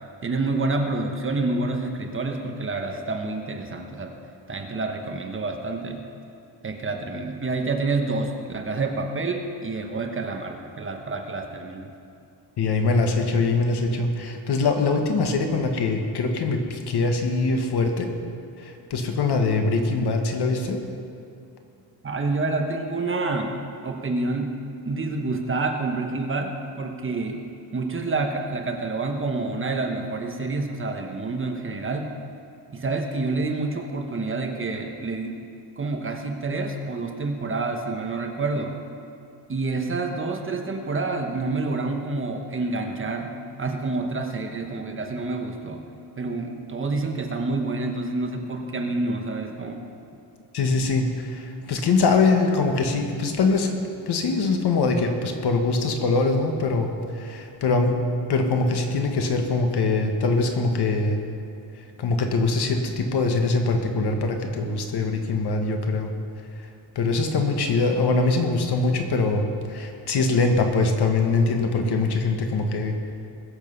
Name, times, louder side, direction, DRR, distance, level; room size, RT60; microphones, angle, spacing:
voice 1, 0.2-4.1 4.5-6.0 6.6-11.9 22.0-23.6 23.8-24.6 24.8-27.4 27.7-32.1 32.7-35.4 35.8-38.8 39.5-45.8 46.2-49.8, right 3 dB, 30° right, 3 dB, 1.2 m, -28 dB
voice 2, 12.6-18.1 18.6-20.8 50.5-53.7 54.1-57.9 58.3-61.2 62.0-66.1 66.6-66.7 66.9-73.0, left 3 dB, 65° left, 4 dB, 1.6 m, -23 dB
21.0 x 7.4 x 5.6 m, 2.6 s
wide cardioid pair, 155°, 42 cm